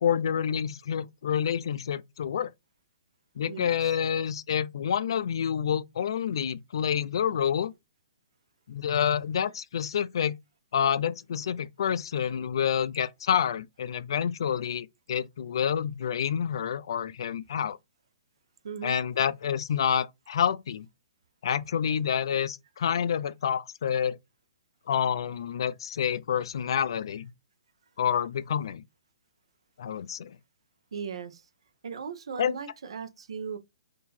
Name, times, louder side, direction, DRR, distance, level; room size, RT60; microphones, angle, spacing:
voice 1, 0.0-2.5 3.4-7.7 8.7-10.4 10.7-17.8 18.8-20.9 21.4-24.2 24.9-27.3 28.0-28.8 29.8-30.4 32.4-32.5, left 8 dB, 60° left, 0.4 m, -28 dB
voice 2, 3.5-4.0 18.6-19.0 30.9-31.4 31.8-33.6, right 6 dB, 75° right, 0.9 m, -38 dB
3.8 x 2.7 x 4.3 m
hypercardioid pair, 160°, 3 cm